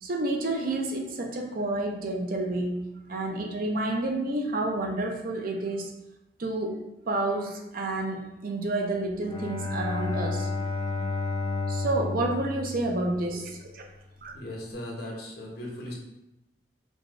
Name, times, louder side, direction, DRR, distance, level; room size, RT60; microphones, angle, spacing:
voice 1, 0.0-2.8 3.1-5.9 6.4-10.5 11.7-13.8 14.2-14.3, right 2 dB, 55° right, 2 dB, 0.6 m, -29 dB
Bowed string instrument, 9.2-13.7, left 3 dB, 25° left, 0.5 m, -32 dB
voice 2, 14.3-15.9, left 1 dB, 65° left, -2 dB, 1.0 m, -38 dB
5.3 x 2.3 x 3.1 m, 0.92 s
head